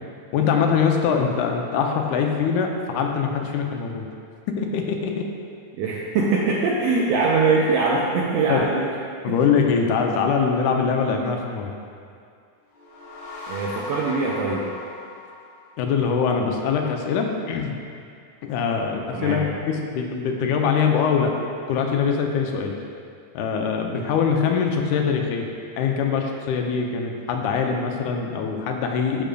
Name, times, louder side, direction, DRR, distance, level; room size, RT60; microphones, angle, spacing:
voice 1, 0.3-4.1 4.6-5.1 8.5-8.6 9.2-11.7 15.8-17.7 18.4-19.4 19.7-21.3 21.7-22.7 23.3-25.5 25.8-29.2, left 6 dB, 85° left, 2 dB, 2.1 m, -23 dB
voice 2, 5.8-8.9 9.3-9.4 13.5-14.7 19.1-19.5, right 4 dB, 80° right, -4 dB, 1.5 m, -22 dB
sound 1, 12.6-16.1, left 3 dB, 65° left, 1.2 m, -39 dB
11.5 x 5.1 x 2.3 m, 2.3 s
omnidirectional pair, 3.4 m